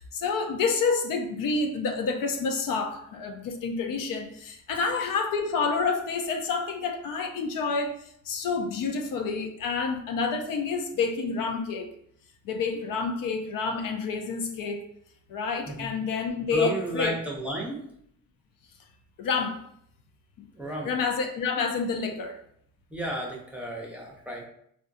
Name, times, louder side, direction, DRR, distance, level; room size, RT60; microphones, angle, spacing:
voice 1, 0.0-11.9 12.4-14.8 15.3-17.2 19.2-19.6 20.4-20.5 20.8-22.4, left 4 dB, 75° left, 4 dB, 0.5 m, -28 dB
voice 2, 16.5-17.8 20.5-20.9 22.9-24.5, right 1 dB, 5° right, -2 dB, 0.7 m, -32 dB
3.6 x 2.3 x 2.6 m, 0.70 s
cardioid pair, 95°, 33 cm